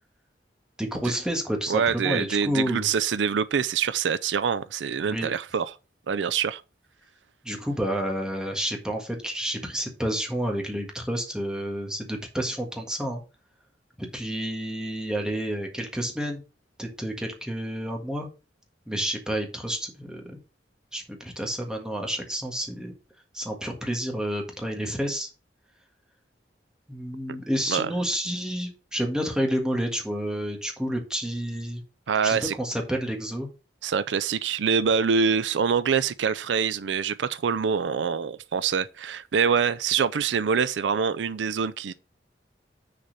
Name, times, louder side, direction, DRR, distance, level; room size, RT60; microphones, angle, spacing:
voice 1, 0.8-2.9 5.0-5.3 7.4-13.2 14.0-16.4 16.8-18.3 18.9-20.4 20.9-22.9 23.3-25.3 26.9-31.8 32.2-33.5, equal, 5° right, 1.6 m, -30 dB
voice 2, 1.7-5.7 6.1-6.6 27.3-27.4 27.7-27.9 32.1-32.5 33.8-41.9, right 6 dB, 85° right, 0.4 m, -25 dB
6.5 x 4.2 x 6.5 m
head